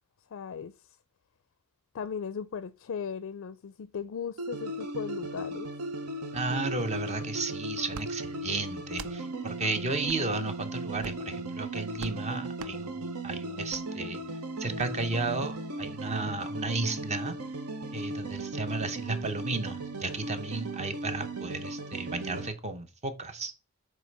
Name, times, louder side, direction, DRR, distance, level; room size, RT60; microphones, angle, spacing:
voice 1, 0.3-0.9 1.9-5.7, left 6 dB, 60° left, 0.4 m, -37 dB
sound 1, 4.4-22.5, right 2 dB, 85° right, 1.0 m, -37 dB
voice 2, 6.3-14.2 14.6-17.3 17.9-23.5, right 3 dB, 30° right, 0.7 m, -33 dB
sound 2, 7.9-8.1 8.9-9.2 10.0-10.2 11.0-11.3 12.0-12.2 12.6-12.8 13.7-13.8 14.8-14.9, right 6 dB, 65° right, 0.4 m, -43 dB
7.7 x 3.2 x 5.2 m
head